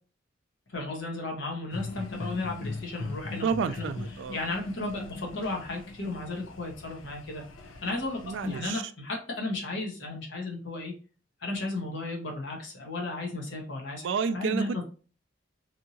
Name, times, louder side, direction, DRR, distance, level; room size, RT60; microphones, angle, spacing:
voice 1, 0.7-3.5 3.8-3.9 4.3-7.4 7.8-10.9 11.4-14.1 14.3-14.8, left 2 dB, 65° left, 0 dB, 1.1 m, -34 dB
sound 1, 1.7-8.7, left 2 dB, 85° left, 0.7 m, -40 dB
voice 2, 3.4-4.4 8.2-8.8 14.0-14.8, right 5 dB, 65° right, 10 dB, 0.3 m, -30 dB
3.5 x 2.8 x 2.7 m, 0.37 s
head